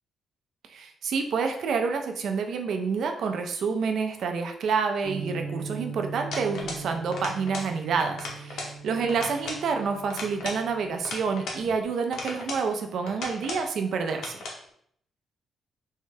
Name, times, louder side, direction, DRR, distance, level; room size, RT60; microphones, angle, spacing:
voice 1, 0.7-14.4, right 5 dB, 65° right, 5 dB, 0.4 m, -28 dB
sound 1, 5.0-11.8, right 5 dB, 10° right, 0.6 m, -40 dB
sound 2, 6.3-6.9 7.1-7.7 8.0-8.8 9.1-9.7 10.1-11.6 12.1-12.7 13.1-13.7 14.1-14.6, left 2 dB, 85° left, 0.8 m, -36 dB
3.6 x 2.2 x 3.3 m, 0.65 s
cardioid pair, 150°, 0 cm